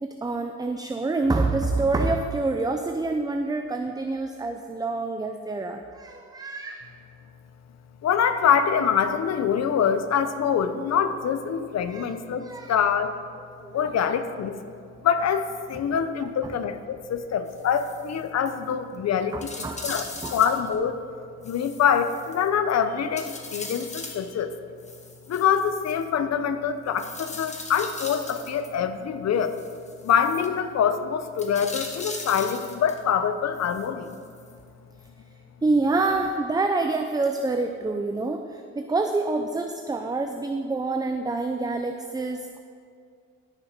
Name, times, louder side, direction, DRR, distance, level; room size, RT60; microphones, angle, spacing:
voice 1, 0.0-6.9 11.9-12.1 12.4-12.8 13.6-13.9 16.4-16.5 19.3-20.3 35.6-42.6, right 3 dB, 15° right, 5 dB, 0.5 m, -27 dB
voice 2, 8.0-13.2 13.7-14.7 15.0-21.0 21.4-24.6 25.3-29.6 30.0-34.2, left 7 dB, 60° left, 10 dB, 0.8 m, -25 dB
sound 1, 17.5-18.1 18.5-18.6 18.9-19.0 19.4-20.7 21.4-22.7 23.2-24.3 24.8-26.1 27.0-28.7 29.4-30.5 31.3-33.0 33.5-34.5 35.0-35.1, left 3 dB, 25° left, 1.3 m, -39 dB
13.0 x 6.7 x 4.6 m, 2.3 s
cardioid pair, 85°, 29 cm